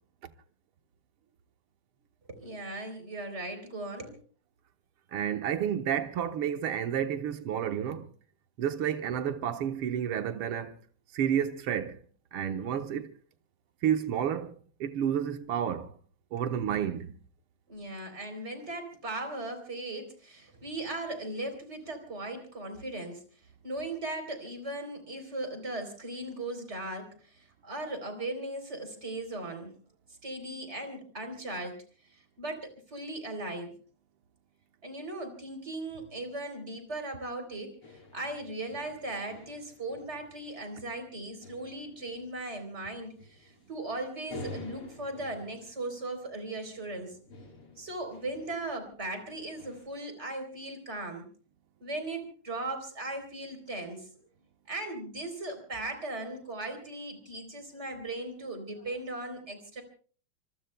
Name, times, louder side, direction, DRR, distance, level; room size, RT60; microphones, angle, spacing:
voice 1, 2.3-4.2 16.4-16.5 17.7-23.2 23.6-29.7 30.2-33.7 34.8-47.2 47.8-51.3 51.8-54.1 54.7-59.8, right 2 dB, 30° right, 4.0 m, -38 dB
voice 2, 5.1-8.1 8.6-10.8 11.1-12.0 12.3-13.1 13.8-15.9 16.3-17.2, right 9 dB, 85° right, 2.0 m, -30 dB
sound 1, 37.8-49.9, left 2 dB, 85° left, 5.6 m, -50 dB
26.5 x 24.0 x 2.2 m
omnidirectional pair, 2.4 m